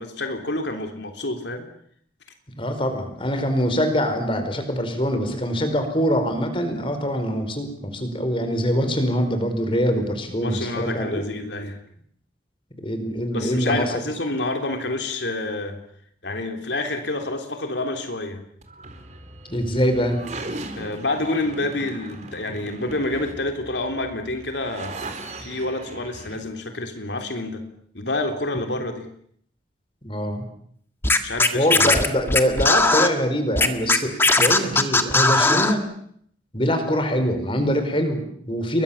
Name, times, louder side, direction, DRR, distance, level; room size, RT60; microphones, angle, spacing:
voice 1, 0.0-1.7 10.4-11.8 13.3-15.8 16.2-18.4 20.7-24.9 25.4-27.6 27.9-29.1 31.2-31.9, left 2 dB, 75° left, 5 dB, 3.3 m, -28 dB
voice 2, 2.6-11.2 12.8-13.8 19.5-20.2 30.0-30.4 31.5-35.9 36.5-38.8, equal, 30° left, 7 dB, 4.8 m, -24 dB
sound 1, 18.6-26.4, right 2 dB, 40° right, 4.2 m, -38 dB
Scratching (performance technique), 31.0-33.1 33.6-35.7, left 3 dB, 15° left, 1.8 m, -18 dB
30.0 x 23.0 x 7.2 m, 0.66 s
head